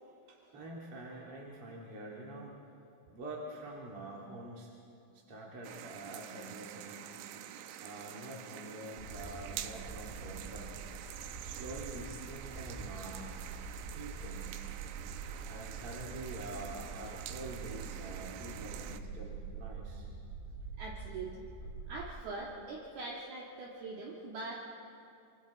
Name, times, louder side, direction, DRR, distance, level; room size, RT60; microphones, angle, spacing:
voice 1, 0.3-2.5 3.1-4.7 5.3-7.1 7.8-10.7 11.4-13.4 13.8-14.5 15.5-20.1, right 1 dB, 40° right, -4 dB, 2.2 m, -46 dB
sound 1, 5.6-19.0, right 11 dB, 80° right, 3.2 m, -47 dB
sound 2, 9.0-22.0, right 4 dB, 5° right, 1.4 m, -45 dB
voice 2, 20.8-21.5 21.9-24.7, right 3 dB, 60° right, -4 dB, 3.4 m, -42 dB
28.5 x 25.0 x 4.2 m, 2.5 s
omnidirectional pair, 5.6 m